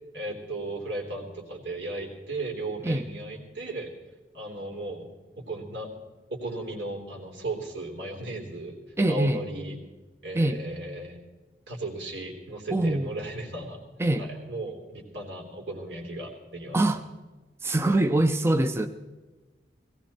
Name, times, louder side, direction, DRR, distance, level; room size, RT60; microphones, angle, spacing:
voice 1, 0.1-3.9 4.3-5.1 5.4-5.9 6.3-8.8 9.1-9.8 10.2-11.2 11.7-13.8 14.2-16.8, right 2 dB, 80° right, 1 dB, 3.5 m, -36 dB
voice 2, 9.0-9.4 10.3-10.6 12.7-13.1 14.0-14.3 16.7-17.0 17.6-18.9, right 1 dB, 15° right, 7 dB, 0.6 m, -23 dB
18.0 x 17.0 x 4.3 m, 1.2 s
head